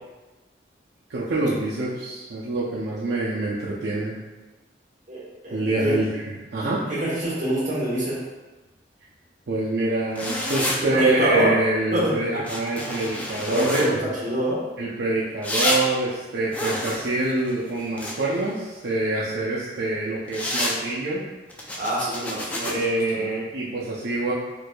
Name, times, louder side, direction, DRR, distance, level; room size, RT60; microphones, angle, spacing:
voice 1, 1.1-4.1 5.5-6.2 6.5-6.8 9.5-14.0 14.8-21.2 22.6-24.3, right 2 dB, 70° right, -7 dB, 0.5 m, -26 dB
voice 2, 5.1-6.0 6.9-8.2 10.9-11.5 11.9-12.4 13.5-13.9 14.2-14.6 21.8-23.3, equal, 45° right, -8 dB, 1.4 m, -26 dB
sound 1, 10.1-10.8 12.4-13.9 15.4-15.8 16.5-18.4 20.3-20.8 21.5-22.7, left 1 dB, 10° left, 0.3 m, -28 dB
4.5 x 2.5 x 2.2 m, 1.1 s
head